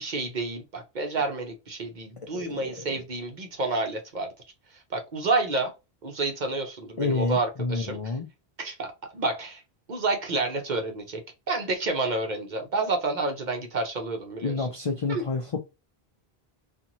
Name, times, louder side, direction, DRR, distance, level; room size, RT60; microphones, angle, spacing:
voice 1, 0.0-4.3 4.9-5.7 6.0-8.1 8.6-8.9 9.1-9.6 9.9-11.2 11.5-14.7 15.1-15.2, right 3 dB, 50° right, 0.8 m, -29 dB
voice 2, 2.3-3.0 7.0-8.2 14.4-15.6, left 3 dB, 50° left, 0.4 m, -29 dB
2.8 x 2.5 x 2.6 m
omnidirectional pair, 1.1 m